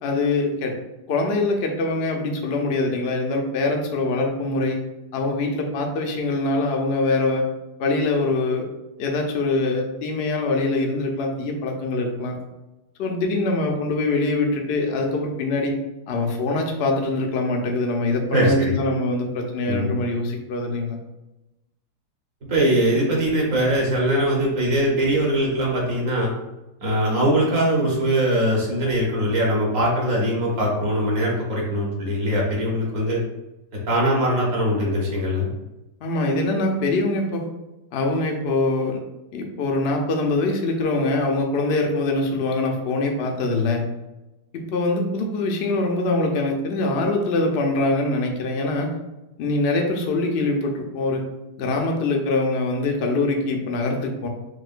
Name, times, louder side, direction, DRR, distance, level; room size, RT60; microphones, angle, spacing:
voice 1, 0.0-0.7 1.1-4.8 5.1-7.4 7.8-8.7 9.0-12.4 13.0-15.7 16.1-21.0 36.0-37.5 37.9-39.0 39.3-43.8 44.5-49.0 49.4-51.2 51.6-54.3, left 2 dB, 85° left, 2 dB, 0.5 m, -23 dB
voice 2, 18.3-18.8 19.7-20.0 22.5-26.3 26.8-33.2 33.9-35.5, equal, 55° right, -3 dB, 1.2 m, -21 dB
6.3 x 2.2 x 2.5 m, 0.99 s
omnidirectional pair, 1.9 m